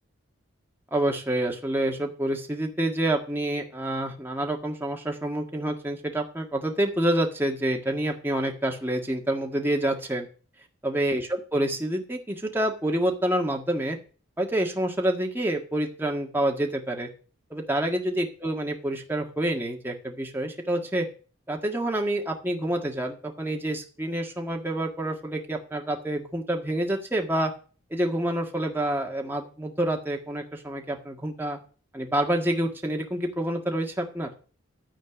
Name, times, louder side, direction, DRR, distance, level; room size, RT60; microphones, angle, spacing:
voice 1, 0.9-10.3 10.8-14.0 14.4-17.1 17.5-21.1 21.5-27.5 27.9-31.6 31.9-34.3, right 1 dB, 10° right, 1 dB, 1.6 m, -27 dB
13.0 x 4.4 x 8.2 m, 0.39 s
head